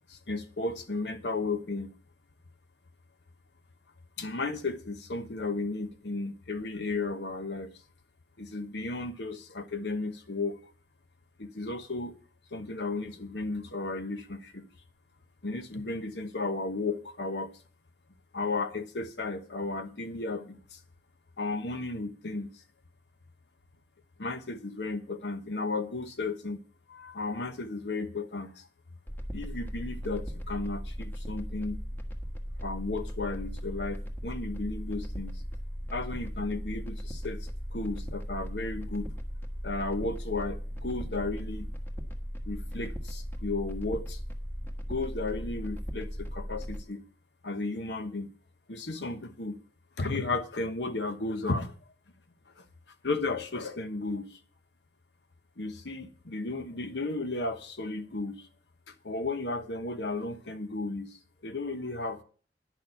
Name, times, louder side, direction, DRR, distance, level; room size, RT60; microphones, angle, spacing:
voice 1, 0.1-1.9 4.2-7.7 8.4-10.6 11.4-12.1 12.5-14.7 15.4-17.5 18.3-20.8 21.4-22.5 24.2-26.6 26.9-28.6 29.3-31.8 32.6-35.4 35.9-39.1 39.6-41.7 42.4-44.2 44.9-47.0 47.4-48.3 48.7-49.6 50.0-51.7 52.6-52.7 53.0-54.4 55.6-58.5 59.0-62.2, left 3 dB, 70° left, 1.1 m, -34 dB
sound 1, 29.1-46.8, equal, 10° left, 1.4 m, -37 dB
10.5 x 6.6 x 7.9 m
head